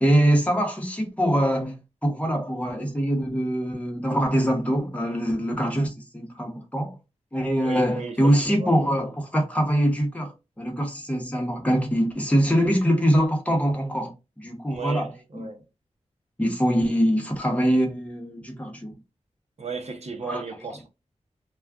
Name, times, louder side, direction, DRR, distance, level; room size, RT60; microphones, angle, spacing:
voice 1, 0.0-6.9 7.3-15.4 16.4-18.9 20.2-20.4, equal, 10° left, 0.9 m, -23 dB
voice 2, 7.6-8.7 14.7-15.6 19.6-20.9, right 5 dB, 60° right, 0.7 m, -35 dB
2.4 x 2.3 x 3.4 m
wide cardioid pair, 95°, 12 cm